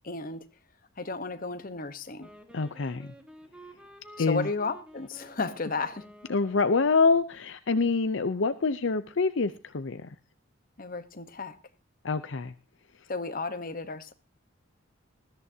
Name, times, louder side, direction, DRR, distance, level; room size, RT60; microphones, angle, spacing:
voice 1, 0.0-0.4 1.0-2.3 4.2-6.1 10.8-11.5 13.1-14.1, left 3 dB, 40° left, 1.1 m, -33 dB
Wind instrument woodwind instrument, 2.2-7.2, right 1 dB, 5° right, 1.5 m, -51 dB
voice 2, 2.5-3.1 4.2-4.5 6.3-10.2 12.0-12.5, left 4 dB, 60° left, 0.6 m, -26 dB
20.5 x 13.5 x 2.8 m
head